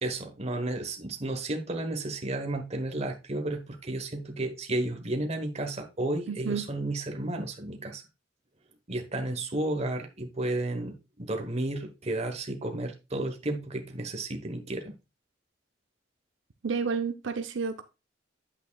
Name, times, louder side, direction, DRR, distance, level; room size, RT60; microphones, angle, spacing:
voice 1, 0.0-8.0 8.9-14.9, right 2 dB, 35° right, 1.1 m, -32 dB
voice 2, 6.3-6.7 16.6-17.8, right 5 dB, 80° right, 0.7 m, -30 dB
8.6 x 8.0 x 2.3 m
head